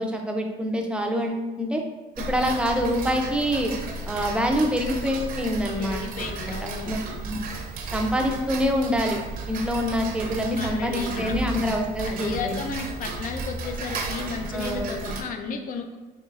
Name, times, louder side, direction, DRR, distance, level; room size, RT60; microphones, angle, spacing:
voice 1, 0.0-1.8 2.3-3.7 4.1-6.1 6.5-6.6 6.9-7.0 7.3-7.4 7.9-9.2 9.5-12.5 14.5-15.1, equal, 5° right, 2 dB, 0.5 m, -25 dB
Tick-tock, 2.2-15.2, right 3 dB, 60° right, 0.6 m, -34 dB
voice 2, 5.8-7.0 10.6-11.4 12.0-16.0, left 5 dB, 55° left, 5 dB, 0.5 m, -33 dB
4.5 x 3.0 x 2.4 m, 1.2 s
cardioid pair, 110°, 17 cm